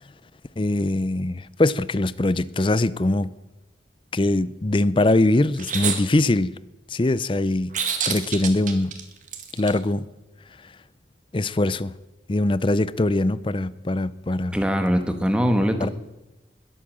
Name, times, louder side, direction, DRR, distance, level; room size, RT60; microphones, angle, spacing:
voice 1, 0.6-3.3 4.1-6.5 6.9-7.7 8.1-8.9 9.6-10.1 11.3-11.9 12.3-14.6 15.8-15.9, left 2 dB, 30° left, 0.5 m, -22 dB
sound 1, 5.6-6.0 7.7-9.7, right 7 dB, 45° right, 1.9 m, -27 dB
voice 2, 14.5-15.9, equal, 5° right, 1.4 m, -22 dB
21.0 x 8.4 x 7.6 m
head